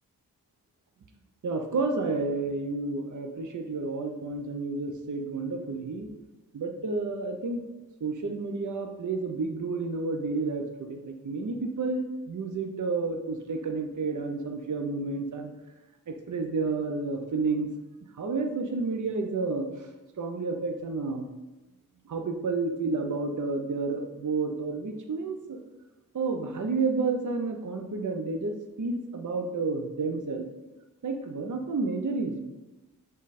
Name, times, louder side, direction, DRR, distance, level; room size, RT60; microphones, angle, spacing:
voice 1, 1.4-6.1 6.5-7.6 8.0-15.5 16.1-17.7 18.2-19.7 20.2-21.3 22.1-25.6 26.1-30.4 31.0-32.4, right 3 dB, 55° right, 5 dB, 0.7 m, -30 dB
7.4 x 3.8 x 4.1 m, 1.1 s
wide cardioid pair, 90°, 37 cm